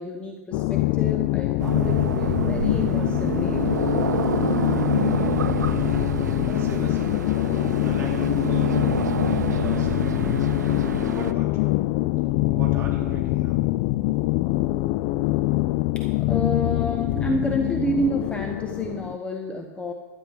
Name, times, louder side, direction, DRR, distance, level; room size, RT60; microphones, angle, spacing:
voice 1, 0.0-3.7 15.9-19.9, left 1 dB, 10° left, 3 dB, 1.0 m, -29 dB
sound 1, 0.5-19.2, left 18 dB, 40° left, 0.4 m, -24 dB
sound 2, 1.6-11.3, right 7 dB, 75° right, 0.6 m, -28 dB
voice 2, 6.3-7.2 7.8-10.3 11.2-11.7 12.5-13.6, right 3 dB, 25° right, -4 dB, 3.9 m, -39 dB
12.5 x 9.8 x 5.0 m, 1.2 s
figure-of-eight pair, 105°, 10 cm